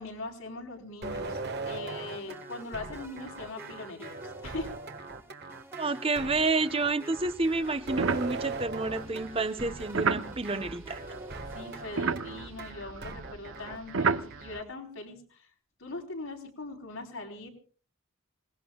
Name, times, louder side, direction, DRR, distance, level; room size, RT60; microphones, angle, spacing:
voice 1, 0.0-1.4 1.7-4.7 11.5-15.5 15.8-17.5, left 2 dB, 80° left, 4.4 m, -41 dB
sound 1, 1.0-14.6, right 3 dB, 50° right, 1.6 m, -40 dB
sound 2, 2.1-12.7, right 1 dB, 10° right, 1.5 m, -51 dB
voice 2, 5.8-11.0, right 3 dB, 25° right, 1.0 m, -29 dB
sound 3, 7.2-11.4 11.7-14.6, right 5 dB, 70° right, 0.8 m, -33 dB
27.0 x 19.5 x 2.4 m
head